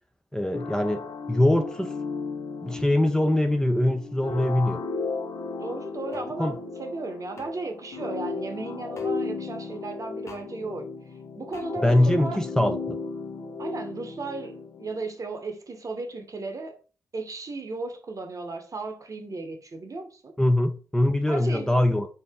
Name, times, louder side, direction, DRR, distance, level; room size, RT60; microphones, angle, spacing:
voice 1, 0.3-1.0 1.3-1.9 2.6-4.8 6.4-6.5 11.8-13.0 20.4-22.1, left 1 dB, 5° left, 0.5 m, -22 dB
sound 1, 0.5-15.1, left 4 dB, 60° left, 0.5 m, -35 dB
voice 2, 5.6-10.8 11.4-12.4 13.6-16.8 17.1-20.3 21.3-21.7, right 3 dB, 45° right, 0.9 m, -35 dB
sound 2, 6.1-6.3 7.3-7.5 8.9-9.1 10.2-10.5 11.5-11.7, left 3 dB, 35° left, 0.9 m, -45 dB
2.9 x 2.8 x 3.5 m
hypercardioid pair, 40°, 8 cm